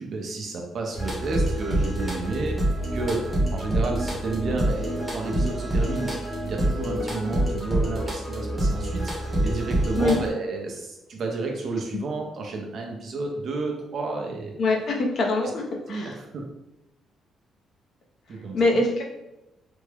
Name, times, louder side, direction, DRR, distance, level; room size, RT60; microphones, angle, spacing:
voice 1, 0.0-2.6 2.9-3.2 3.5-6.2 6.4-14.5 15.9-16.4 18.3-18.8, right 3 dB, 45° right, 1 dB, 0.6 m, -31 dB
sound 1, 0.9-10.3, right 1 dB, ahead, 0.8 m, -26 dB
voice 2, 14.6-16.1 18.5-19.0, left 2 dB, 45° left, 0 dB, 0.6 m, -23 dB
3.4 x 2.1 x 3.3 m, 0.91 s
cardioid pair, 180°, 0 cm